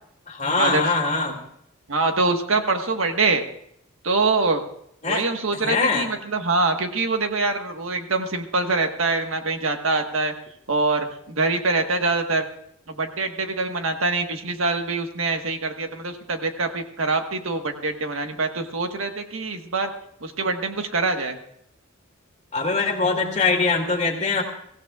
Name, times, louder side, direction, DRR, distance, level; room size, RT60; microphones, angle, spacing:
voice 1, 0.3-1.4 5.0-5.2 5.5-6.1 22.5-24.4, left 4 dB, 35° left, 0 dB, 2.5 m, -22 dB
voice 2, 1.9-3.5 4.0-4.6 5.0-10.3 10.7-12.4 12.9-19.9 20.2-21.4, right 3 dB, 75° right, 5 dB, 1.5 m, -24 dB
23.5 x 15.5 x 2.4 m, 0.72 s
head